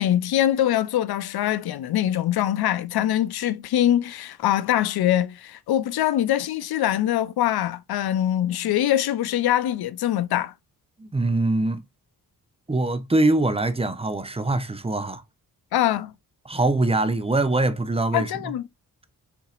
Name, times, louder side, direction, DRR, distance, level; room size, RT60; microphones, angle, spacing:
voice 1, 0.0-10.5 15.7-16.1 18.1-18.7, left 12 dB, 70° left, 0.6 m, -23 dB
voice 2, 11.0-11.8 12.7-15.2 16.5-18.5, right 2 dB, 15° right, 0.8 m, -23 dB
7.0 x 2.9 x 2.4 m
cardioid pair, 75°, 39 cm